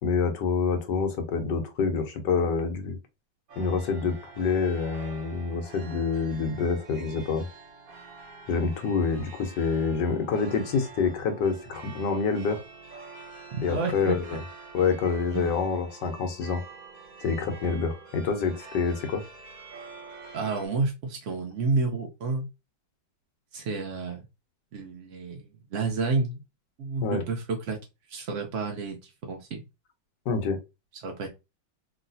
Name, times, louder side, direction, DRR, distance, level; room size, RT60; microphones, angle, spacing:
voice 1, 0.0-3.0 3.6-7.4 8.5-12.6 13.6-14.4 14.7-16.6 17.2-19.2 27.0-27.2 30.3-30.6, left 5 dB, 70° left, 6 dB, 1.3 m, -27 dB
sound 1, 3.5-20.7, right 4 dB, 50° right, 1.3 m, -46 dB
voice 2, 13.5-14.4 15.3-15.5 20.3-22.5 23.5-24.2 24.7-26.4 26.8-27.8 28.1-29.6 31.0-31.3, right 4 dB, 70° right, 2 dB, 0.7 m, -30 dB
3.0 x 2.8 x 2.6 m, 0.25 s
omnidirectional pair, 2.0 m